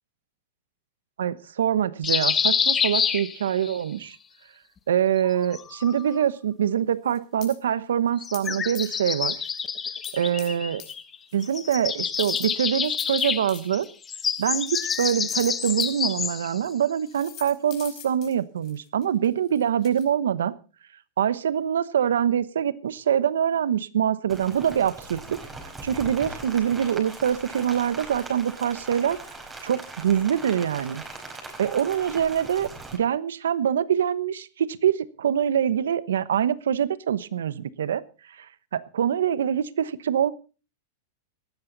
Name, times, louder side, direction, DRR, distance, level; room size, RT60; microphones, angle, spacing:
voice 1, 1.2-4.2 4.9-9.4 10.1-10.8 11.3-13.9 14.4-20.5 21.2-25.4 25.8-29.2 29.6-31.0 31.6-38.0 38.4-38.5 38.7-40.3, right 9 dB, 85° right, 17 dB, 1.0 m, -24 dB
sound 1, 2.0-3.8 5.2-6.2 8.2-11.2 11.4-16.6, left 6 dB, 20° left, 1.2 m, -27 dB
sound 2, 7.1-7.6 8.3-8.5 8.7-9.1 9.5-9.6 10.0-10.5 10.8-10.9 11.3-11.8 12.1-15.9 16.6-16.7 17.1-20.1, left 11 dB, 45° left, 5.1 m, -43 dB
Rain, 24.3-33.0, right 2 dB, 15° right, 4.8 m, -40 dB
18.0 x 13.0 x 4.0 m, 0.35 s
hypercardioid pair, 120°, 0 cm